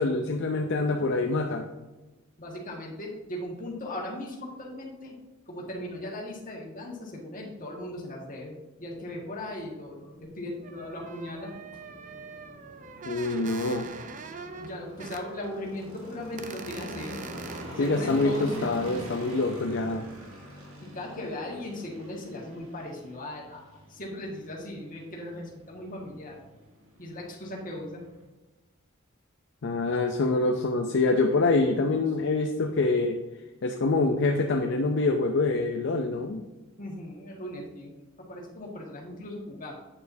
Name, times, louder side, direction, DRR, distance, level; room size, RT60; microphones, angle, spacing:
voice 1, 0.0-1.7 13.0-13.9 17.8-20.1 29.6-33.2 33.6-36.4, left 3 dB, 60° left, 4 dB, 0.5 m, -25 dB
voice 2, 2.4-5.2 5.5-11.6 14.6-17.2 17.8-18.8 20.8-26.4 27.0-28.0 36.8-39.7, left 1 dB, 40° left, -1 dB, 1.7 m, -38 dB
sound 1, 8.9-28.2, equal, 80° right, 1.7 m, -45 dB
sound 2, 10.2-10.3 10.6-15.2 15.7-15.8 16.4-17.6, right 4 dB, 40° right, 0.6 m, -43 dB
8.7 x 6.8 x 2.7 m, 1.2 s
head